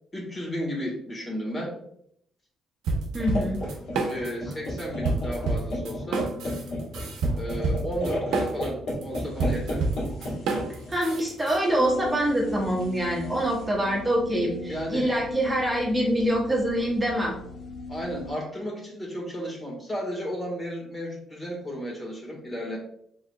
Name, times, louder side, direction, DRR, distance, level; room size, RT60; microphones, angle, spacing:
voice 1, 0.1-1.7 4.1-6.3 7.3-9.9 11.1-11.2 14.7-15.1 17.9-22.8, equal, 30° left, -2 dB, 1.6 m, -33 dB
sound 1, 2.9-4.5 4.8-11.6, right 3 dB, 85° right, 0.7 m, -28 dB
voice 2, 3.1-3.6 10.9-17.3, right 1 dB, 15° right, -3 dB, 1.2 m, -25 dB
sound 2, 3.2-13.6, left 1 dB, 70° left, 1.6 m, -34 dB
sound 3, 11.8-18.3, left 3 dB, 50° left, 0.5 m, -39 dB
4.7 x 3.8 x 2.3 m, 0.70 s
cardioid pair, 90°, 0 cm